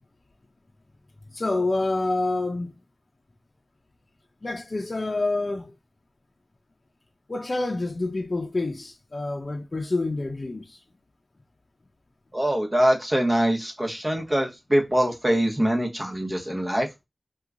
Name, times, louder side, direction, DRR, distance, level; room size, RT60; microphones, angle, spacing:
voice 1, 1.3-2.8 4.4-5.7 7.3-10.8 14.1-14.2, left 2 dB, 60° left, 0.5 m, -27 dB
voice 2, 12.3-16.9, equal, 25° right, 1.1 m, -23 dB
2.8 x 2.3 x 3.6 m
wide cardioid pair, 45°, 0 cm